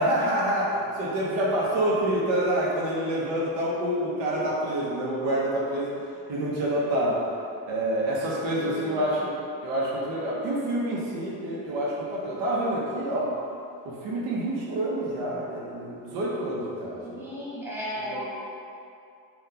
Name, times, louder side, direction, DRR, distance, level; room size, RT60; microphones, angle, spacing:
voice 1, 0.0-5.9 6.3-7.2 7.7-9.3 9.6-13.3 13.8-17.3 18.0-18.2, right 1 dB, 70° right, -4 dB, 0.8 m, -27 dB
voice 2, 8.4-9.3 16.9-18.2, equal, 5° right, -8 dB, 0.8 m, -37 dB
3.7 x 2.4 x 2.7 m, 2.5 s
cardioid pair, 95°, 46 cm